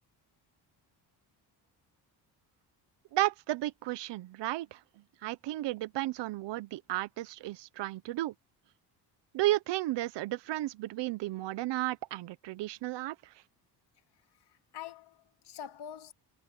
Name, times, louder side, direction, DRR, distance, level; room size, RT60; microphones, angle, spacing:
voice 1, 3.1-4.8 5.2-8.3 9.3-13.2, right 16 dB, 80° right, 1.0 m, -33 dB
voice 2, 14.3-16.1, left 9 dB, 70° left, 3.0 m, -46 dB
cardioid pair, 115°, 41 cm